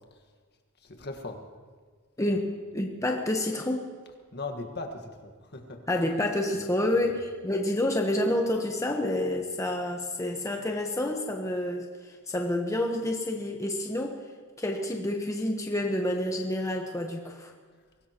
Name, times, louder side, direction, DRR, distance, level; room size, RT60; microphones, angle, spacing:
voice 1, 0.8-1.4 2.3-2.4 4.3-5.8 6.5-7.1, left 2 dB, 50° left, 4 dB, 1.6 m, -39 dB
voice 2, 2.2-3.9 5.9-14.2 14.6-17.5, left 1 dB, 15° left, 1 dB, 1.1 m, -29 dB
23.5 x 18.0 x 3.0 m, 1.5 s
head